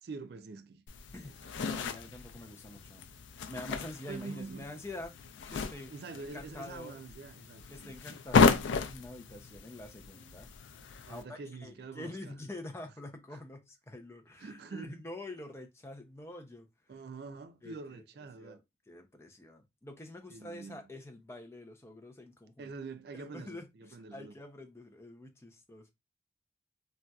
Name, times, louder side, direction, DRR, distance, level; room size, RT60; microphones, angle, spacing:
voice 1, 0.0-0.8 1.2-1.5 4.1-4.6 5.9-8.2 11.1-12.3 13.3-13.4 14.4-15.0 16.9-18.6 20.3-20.8 22.6-24.3, right 4 dB, 60° right, 0.3 m, -45 dB
sound 1, 0.9-11.2, left 5 dB, 85° left, 0.4 m, -33 dB
voice 2, 1.1-3.1 3.5-5.1 5.5-5.9 6.2-6.9 7.7-10.5 11.1-16.7 17.6-17.8 18.4-18.6 18.9-22.7 23.1-25.9, left 1 dB, 15° left, 0.4 m, -46 dB
4.0 x 2.3 x 2.3 m
head